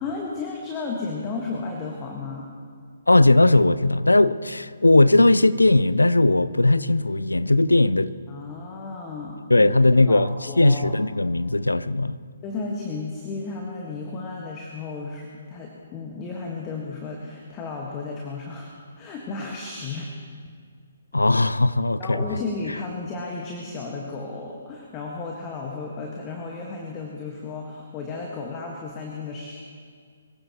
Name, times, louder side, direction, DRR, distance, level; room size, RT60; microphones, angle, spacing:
voice 1, 0.0-2.5 8.3-9.7 10.1-10.9 12.4-18.7 19.0-20.1 22.0-29.6, left 3 dB, 25° left, 1.6 m, -33 dB
voice 2, 3.1-8.1 9.5-12.2 21.1-22.2, left 2 dB, 85° left, 0.5 m, -18 dB
23.0 x 15.5 x 3.1 m
figure-of-eight pair, 135°, 0 cm